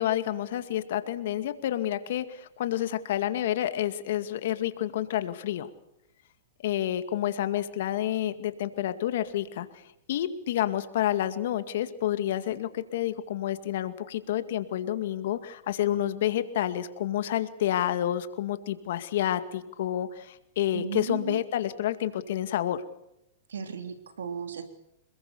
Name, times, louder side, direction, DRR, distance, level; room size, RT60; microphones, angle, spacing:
voice 1, 0.0-5.7 6.6-9.8 10.1-22.8, left 12 dB, 65° left, 10 dB, 2.1 m, -29 dB
voice 2, 20.7-21.4 23.5-24.6, right 7 dB, 90° right, 7 dB, 3.3 m, -35 dB
26.5 x 21.5 x 7.0 m, 0.84 s
hypercardioid pair, 130°, 0 cm